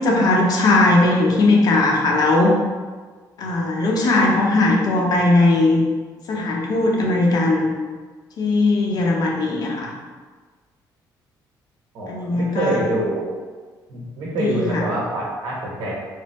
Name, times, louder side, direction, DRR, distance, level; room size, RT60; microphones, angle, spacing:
voice 1, 0.0-2.5 3.4-5.8 6.3-7.7 8.4-9.9 12.1-12.8 14.3-14.8, left 2 dB, 55° left, -1 dB, 0.7 m, -18 dB
voice 2, 11.9-13.3 13.9-15.9, right 1 dB, 70° right, -5 dB, 1.1 m, -25 dB
3.3 x 2.0 x 3.0 m, 1.4 s
cardioid pair, 100°, 8 cm